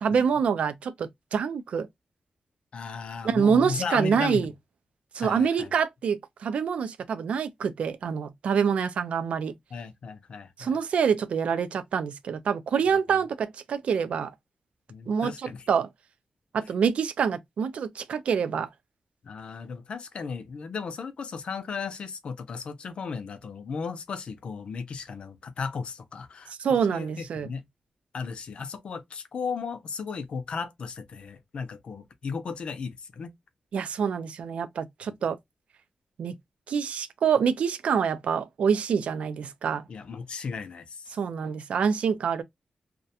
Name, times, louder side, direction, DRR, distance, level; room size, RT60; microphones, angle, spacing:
voice 1, 0.0-1.9 3.2-4.5 5.1-9.5 10.6-14.3 15.1-15.9 16.5-18.7 26.6-27.5 33.7-35.4 36.2-36.3 36.7-39.8 41.1-42.4, right 6 dB, 75° right, 0.3 m, -26 dB
voice 2, 2.7-4.4 5.2-5.7 9.7-10.8 12.9-13.2 14.9-15.6 19.2-26.5 26.9-27.6 28.1-33.3 39.9-41.0, left 5 dB, 55° left, 0.4 m, -35 dB
2.3 x 2.1 x 2.7 m
wide cardioid pair, 165°, 2 cm